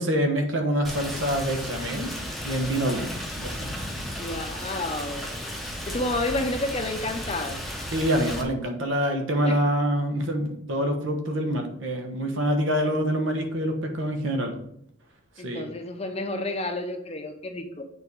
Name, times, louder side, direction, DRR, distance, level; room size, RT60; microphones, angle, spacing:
voice 1, 0.0-2.1 2.4-3.1 3.4-3.7 7.9-14.5 15.4-15.6, equal, 65° right, 4 dB, 1.2 m, -26 dB
Rain, 0.8-8.4, equal, ahead, 0.8 m, -34 dB
voice 2, 4.2-5.3 5.9-7.6 9.4-9.6 15.4-17.8, left 2 dB, 30° left, 5 dB, 0.7 m, -30 dB
8.0 x 4.1 x 4.7 m, 0.72 s
head